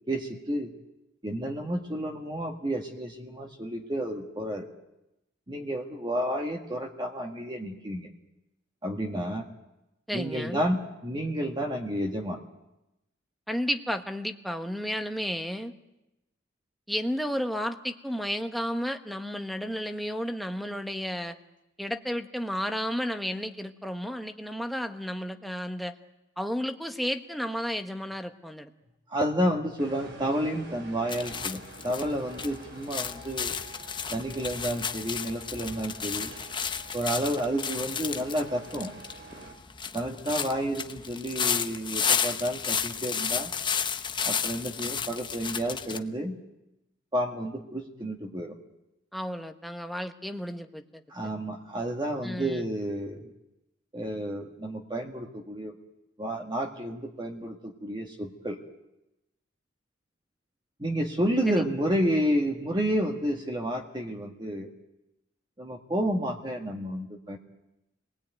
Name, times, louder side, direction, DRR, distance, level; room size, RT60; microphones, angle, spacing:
voice 1, 0.1-0.7 1.2-4.7 5.5-8.1 8.8-9.5 10.1-12.4 29.1-33.6 34.1-36.3 36.9-38.9 39.9-43.5 44.2-46.4 47.1-48.6 51.1-53.3 53.9-55.7 56.2-58.6 60.8-64.7 65.6-67.4, equal, 25° right, 1 dB, 1.8 m, -30 dB
voice 2, 10.1-10.6 13.5-15.7 16.9-21.3 21.8-25.9 26.4-28.7 49.1-51.0 52.2-52.6 61.5-61.6, equal, ahead, 5 dB, 1.2 m, -32 dB
sound 1, 29.8-39.5, right 2 dB, 60° right, 5.6 m, -48 dB
sound 2, 31.1-46.0, left 7 dB, 25° left, 1.0 m, -32 dB
29.0 x 20.0 x 9.3 m, 0.94 s
head